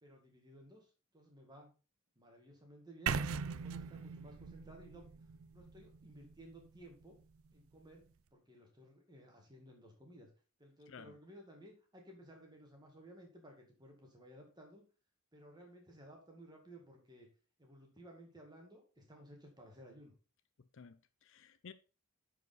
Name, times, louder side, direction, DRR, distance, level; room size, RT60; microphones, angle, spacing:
voice 1, 0.0-1.7 2.2-5.1 5.5-7.2 7.5-10.3 10.6-14.9 15.3-17.3 17.6-20.1, right 1 dB, 20° right, 2.1 m, -57 dB
sound 1, 3.1-7.0, right 6 dB, 70° right, 0.5 m, -40 dB
voice 2, 20.7-21.7, left 6 dB, 60° left, 0.5 m, -54 dB
9.6 x 5.0 x 4.0 m
head